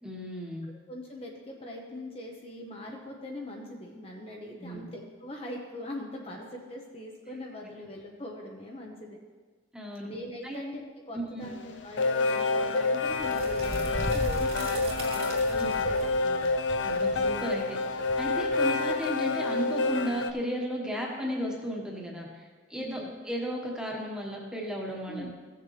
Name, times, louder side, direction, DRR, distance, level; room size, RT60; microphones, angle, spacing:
voice 1, 0.0-0.7 4.6-4.9 9.7-10.1 10.4-10.6 11.1-11.5 15.6-15.8 16.8-17.8 18.2-25.3, equal, 5° right, -2 dB, 1.3 m, -34 dB
voice 2, 0.9-9.2 10.0-16.5 22.8-23.1 25.1-25.3, left 1 dB, 30° left, 0 dB, 0.9 m, -42 dB
sound 1, 11.4-20.3, left 3 dB, 80° left, 0.6 m, -28 dB
sound 2, 13.1-18.9, equal, 55° right, 2.8 m, -38 dB
15.5 x 6.8 x 3.3 m, 1.4 s
head